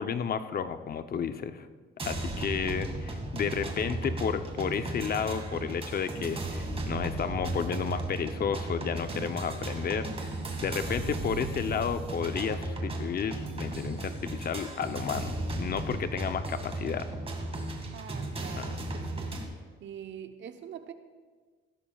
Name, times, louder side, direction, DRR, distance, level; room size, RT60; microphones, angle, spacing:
voice 1, 0.0-1.7 2.1-17.1 18.6-18.8, left 7 dB, 50° left, 10 dB, 0.7 m, -32 dB
sound 1, 2.0-19.4, right 2 dB, 30° right, 2.0 m, -35 dB
voice 2, 17.9-19.4 19.8-20.9, right 8 dB, 70° right, 7 dB, 0.9 m, -44 dB
16.0 x 13.0 x 2.4 m, 1.5 s
cardioid pair, 90°, 20 cm